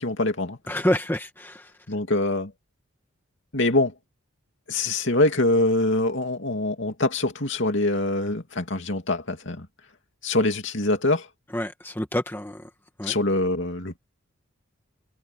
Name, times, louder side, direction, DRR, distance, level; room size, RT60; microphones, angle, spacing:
voice 1, 0.0-0.6 1.9-2.5 3.5-3.9 4.7-9.7 10.2-11.3 13.0-14.0, left 2 dB, 55° left, 2.8 m, -24 dB
voice 2, 0.7-1.7 11.5-12.7 13.0-13.1, left 1 dB, 10° left, 1.7 m, -27 dB
head